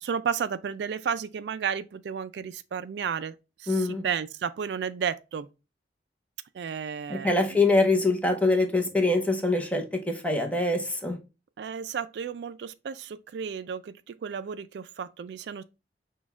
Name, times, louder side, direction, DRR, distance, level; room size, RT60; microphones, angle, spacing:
voice 1, 0.0-3.3 3.6-5.5 6.5-7.6 11.6-15.6, right 7 dB, 70° right, 0.3 m, -33 dB
voice 2, 3.7-4.0 7.1-11.2, left 2 dB, 10° left, 0.7 m, -24 dB
6.1 x 2.3 x 3.5 m
head